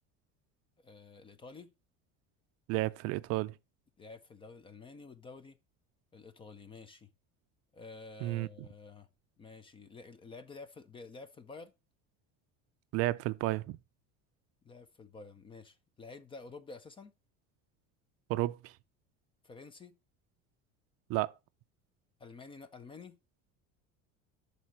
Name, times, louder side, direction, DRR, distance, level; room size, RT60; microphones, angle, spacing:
voice 1, 0.8-1.7 4.0-5.6 6.1-7.1 7.7-9.1 9.4-11.7 14.6-17.1 19.4-20.0 22.2-23.2, left 4 dB, 15° left, 0.5 m, -50 dB
voice 2, 2.7-3.5 8.2-8.5 12.9-13.8 18.3-18.7 21.1-21.3, right 18 dB, 50° right, 0.4 m, -32 dB
11.0 x 4.0 x 6.1 m
cardioid pair, 170°, 33 cm